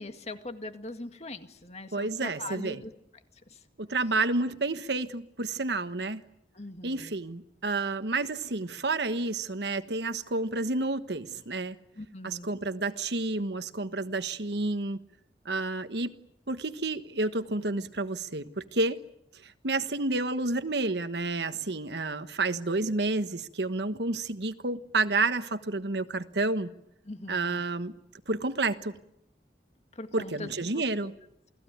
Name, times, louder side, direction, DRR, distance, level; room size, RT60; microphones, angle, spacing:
voice 1, 0.0-2.9 3.5-3.6 6.5-7.1 12.0-12.5 27.1-27.6 29.9-31.1, left 2 dB, 40° left, 2.0 m, -41 dB
voice 2, 1.9-2.8 3.8-6.2 6.8-11.8 12.2-15.0 15.4-16.2 16.5-19.0 19.3-26.7 27.3-27.9 28.3-29.0 30.1-31.1, right 3 dB, 70° right, 1.3 m, -30 dB
29.0 x 18.5 x 9.3 m
head